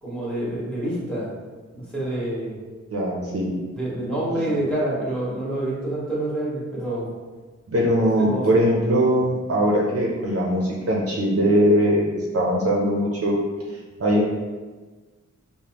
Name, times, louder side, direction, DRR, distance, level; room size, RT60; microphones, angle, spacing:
voice 1, 0.0-1.3 1.7-2.6 3.7-7.1 8.0-8.6, right 1 dB, 5° left, -8 dB, 1.4 m, -27 dB
voice 2, 2.9-3.5 7.7-13.4 14.0-14.3, equal, 50° right, -3 dB, 0.6 m, -21 dB
5.0 x 2.2 x 2.9 m, 1.3 s
wide cardioid pair, 115°, 30 cm